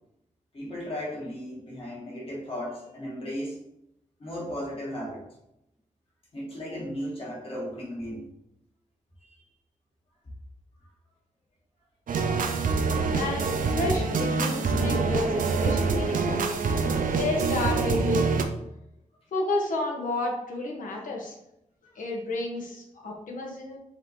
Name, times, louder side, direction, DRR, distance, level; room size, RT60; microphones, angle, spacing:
voice 1, 0.5-3.6 4.2-5.2 6.3-8.3 9.2-9.4 21.8-22.0, equal, 45° left, -5 dB, 1.7 m, -36 dB
sound 1, 12.1-18.4, right 4 dB, 90° right, 0.5 m, -25 dB
voice 2, 13.1-16.4 17.1-18.4 19.3-21.4 21.9-23.8, left 2 dB, 85° left, -1 dB, 1.1 m, -31 dB
5.6 x 2.9 x 3.2 m, 0.82 s
wide cardioid pair, 175°, 13 cm